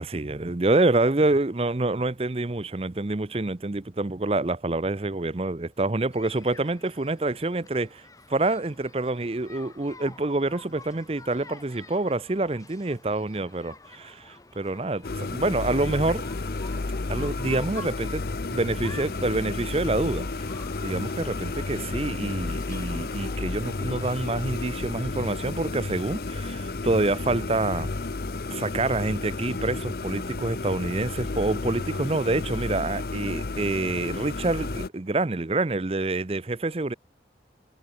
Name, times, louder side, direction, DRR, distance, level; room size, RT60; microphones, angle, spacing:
voice 1, 0.0-16.2 17.1-20.3 20.8-27.9 28.5-36.9, right 2 dB, 35° right, 0.7 m, -27 dB
sound 1, 6.1-24.9, left 3 dB, 20° left, 1.5 m, -49 dB
sound 2, 15.0-34.9, left 3 dB, 55° left, 0.7 m, -32 dB
head